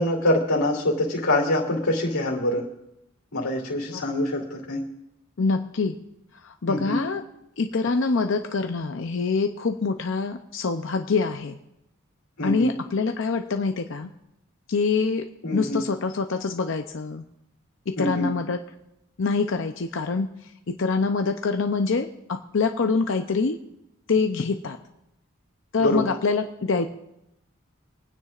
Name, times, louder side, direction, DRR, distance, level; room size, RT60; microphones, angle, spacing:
voice 1, 0.0-2.6 3.3-4.8 6.7-7.0 12.4-12.7 15.4-15.8 18.0-18.3 25.8-26.0, left 1 dB, 85° left, -2 dB, 2.7 m, -24 dB
voice 2, 5.4-6.0 6.4-7.2 7.6-11.6 12.4-14.1 14.7-15.3 15.5-17.2 17.9-18.6 19.2-20.3 20.7-23.6 24.1-24.8 25.7-26.9, left 4 dB, 65° left, 6 dB, 0.6 m, -25 dB
27.5 x 9.5 x 2.5 m, 0.85 s
head